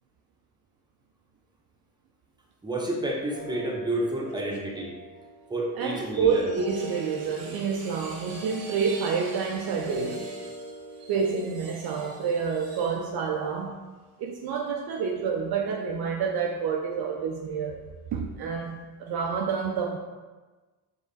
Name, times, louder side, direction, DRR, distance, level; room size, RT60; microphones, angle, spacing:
voice 1, 2.6-4.9 5.5-6.5, right 1 dB, 10° right, -2 dB, 1.0 m, -30 dB
sound 1, 3.3-12.5, equal, 25° left, 1.4 m, -43 dB
voice 2, 5.8-10.7 11.0-13.8 14.2-17.8 18.1-20.0, right 6 dB, 55° right, 1 dB, 0.6 m, -28 dB
5.0 x 2.0 x 4.0 m, 1.2 s
hypercardioid pair, 45°, 46 cm